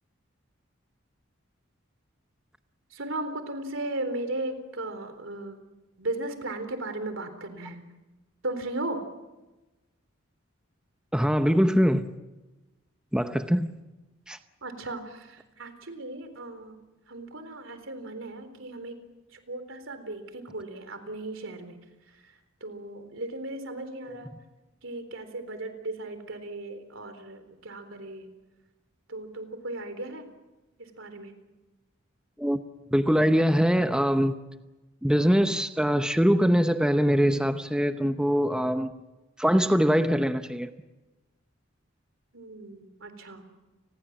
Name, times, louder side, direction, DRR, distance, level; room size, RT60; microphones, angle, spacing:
voice 1, 2.9-5.6 6.0-7.8 8.4-9.0 14.6-16.8 17.1-19.0 19.3-21.8 22.2-22.3 22.6-24.3 24.8-28.3 29.1-30.2 30.8-31.3 42.3-43.5, right 2 dB, 70° right, 9 dB, 3.9 m, -36 dB
voice 2, 11.1-12.1 13.1-13.7 14.3-14.4 24.1-24.2 32.4-32.6 32.9-34.4 35.0-38.9 39.4-40.7, equal, 5° right, 8 dB, 0.8 m, -23 dB
30.0 x 21.0 x 7.4 m, 1.1 s
head